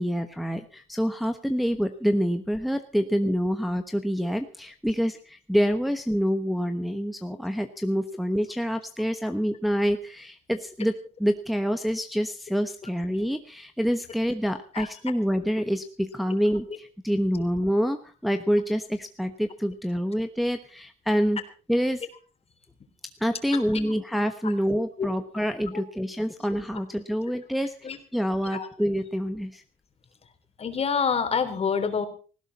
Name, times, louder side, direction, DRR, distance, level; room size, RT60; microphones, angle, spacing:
voice 1, 0.0-21.4 21.7-22.1 23.2-27.7 28.1-29.6, equal, ahead, 7 dB, 1.1 m, -27 dB
voice 2, 23.5-23.9 25.0-25.1 25.7-25.8 27.8-28.0 28.5-28.7 30.6-32.1, left 6 dB, 35° left, 8 dB, 3.5 m, -27 dB
18.5 x 16.5 x 4.2 m, 0.37 s
cardioid pair, 110°, 17 cm